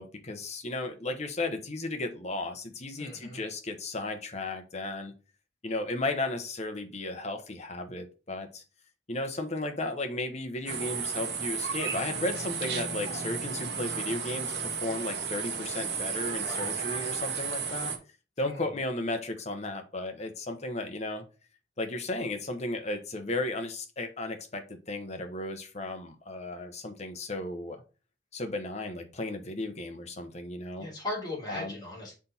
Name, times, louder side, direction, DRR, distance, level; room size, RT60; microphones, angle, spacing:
voice 1, 0.0-5.1 5.6-8.6 9.1-17.9 18.4-21.2 21.8-27.8 28.3-30.9 31.5-31.7, left 2 dB, 40° left, 6 dB, 1.0 m, -34 dB
voice 2, 3.0-3.4 16.4-16.7 18.4-18.7 30.8-32.2, left 1 dB, 25° left, -3 dB, 2.9 m, -38 dB
sound 1, 10.7-18.0, right 6 dB, 70° right, 1.2 m, -33 dB
6.0 x 4.2 x 4.3 m, 0.33 s
head